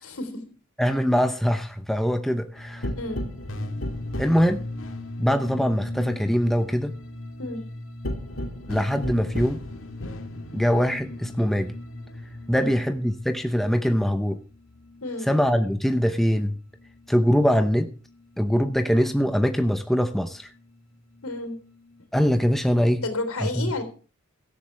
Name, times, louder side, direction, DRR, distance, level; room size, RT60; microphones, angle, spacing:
voice 1, 0.0-0.4 3.0-3.3 7.4-7.7 12.5-12.7 15.0-15.3 21.2-21.6 23.0-23.8, left 2 dB, 75° left, 7 dB, 3.8 m, -31 dB
voice 2, 0.8-2.9 4.2-4.6 5.2-6.9 8.7-9.6 10.5-11.7 12.5-14.4 15.3-16.5 17.1-17.9 18.4-20.5 22.1-23.0 23.4-23.7, equal, ahead, 7 dB, 0.8 m, -23 dB
sound 1, 2.6-15.5 15.8-17.8 18.1-19.8 20.2-22.0, left 1 dB, 60° left, 2.2 m, -36 dB
16.5 x 13.5 x 3.4 m, 0.37 s
head